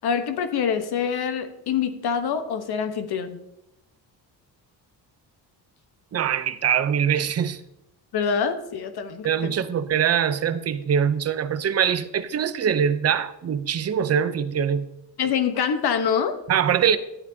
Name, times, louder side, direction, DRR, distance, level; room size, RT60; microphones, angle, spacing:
voice 1, 0.0-3.4 8.1-9.5 15.2-16.4, left 7 dB, 65° left, 1.1 m, -25 dB
voice 2, 6.1-7.6 9.2-14.9 16.5-17.0, right 8 dB, 35° right, 0.6 m, -23 dB
12.0 x 9.1 x 2.8 m
cardioid pair, 90°, 42 cm